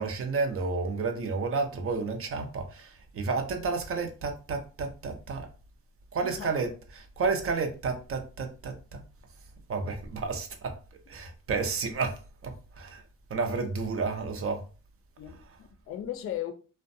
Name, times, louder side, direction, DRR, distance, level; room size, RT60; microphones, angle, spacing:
voice 1, 0.0-5.5 6.1-9.0 9.7-10.7 11.1-13.0 13.3-14.6, right 4 dB, 45° right, 0.6 m, -31 dB
voice 2, 6.2-6.6 15.2-16.5, left 11 dB, 45° left, 0.5 m, -37 dB
2.5 x 2.1 x 2.6 m
cardioid pair, 90°, 30 cm